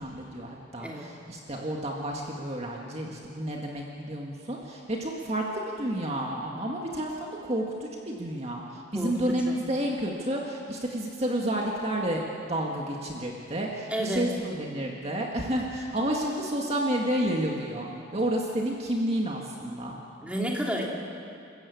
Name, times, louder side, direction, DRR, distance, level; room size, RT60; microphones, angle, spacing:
voice 1, 0.0-12.2 12.5-20.0, right 1 dB, 35° right, -1 dB, 1.9 m, -30 dB
voice 2, 8.9-9.6 13.9-14.4 20.2-20.9, equal, 5° right, -2 dB, 2.7 m, -31 dB
29.0 x 14.5 x 8.5 m, 2.5 s
head